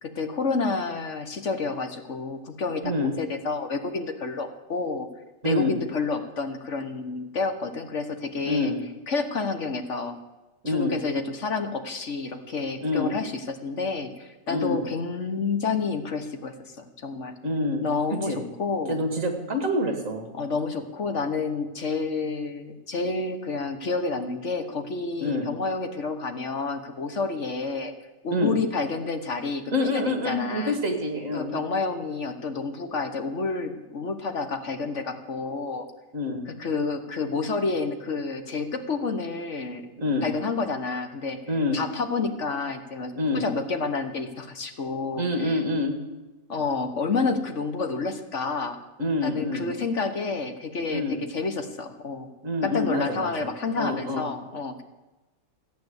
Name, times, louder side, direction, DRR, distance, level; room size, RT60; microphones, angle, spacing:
voice 1, 0.0-5.1 5.4-8.7 9.1-10.2 10.7-17.3 17.8-19.0 20.3-27.9 28.2-30.8 31.3-35.9 36.5-39.9 40.2-41.4 41.7-45.6 46.5-48.8 49.2-52.3 52.6-54.8, left 4 dB, 45° left, 7 dB, 1.3 m, -29 dB
voice 2, 5.4-5.8 8.4-8.8 10.6-11.0 12.8-13.1 14.5-14.8 17.4-17.8 18.3-18.4 18.9-20.3 25.2-25.5 28.3-28.5 29.7-31.6 36.1-36.4 40.0-40.3 41.5-41.8 43.1-43.5 45.2-46.0 49.0-49.7 50.9-51.2 52.4-53.3 53.8-54.3, left 2 dB, 45° right, 4 dB, 2.4 m, -26 dB
15.0 x 9.4 x 8.0 m, 1.1 s
omnidirectional pair, 2.0 m